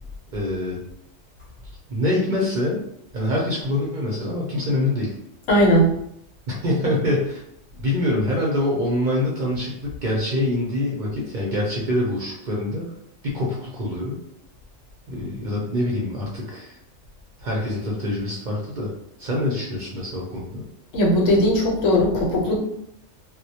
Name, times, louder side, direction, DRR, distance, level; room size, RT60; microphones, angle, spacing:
voice 1, 0.3-0.8 1.9-2.8 3.1-5.1 6.5-7.4 7.8-12.9 13.2-14.2 15.1-16.8 17.4-18.9 19.2-20.6, left 1 dB, 55° right, -4 dB, 0.6 m, -25 dB
voice 2, 5.5-5.9 20.9-22.6, equal, 90° left, -2 dB, 1.1 m, -18 dB
2.1 x 2.1 x 2.7 m, 0.74 s
omnidirectional pair, 1.3 m